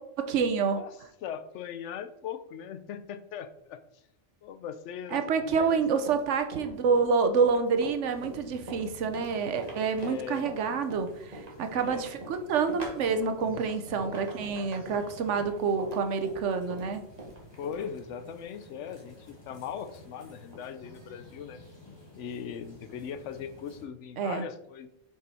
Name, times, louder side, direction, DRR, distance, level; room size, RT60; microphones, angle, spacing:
voice 1, 0.2-0.8 5.1-17.0 24.2-24.5, right 5 dB, 90° right, 8 dB, 1.1 m, -28 dB
voice 2, 1.2-3.8 4.4-5.8 10.0-10.5 11.7-12.1 17.6-21.6 22.1-24.9, left 8 dB, 80° left, 12 dB, 0.9 m, -39 dB
Run, 5.7-17.9, right 1 dB, 35° right, 1.4 m, -43 dB
sound 1, 8.0-23.9, left 1 dB, 20° left, 1.7 m, -52 dB
6.2 x 4.9 x 4.1 m, 0.81 s
omnidirectional pair, 1.2 m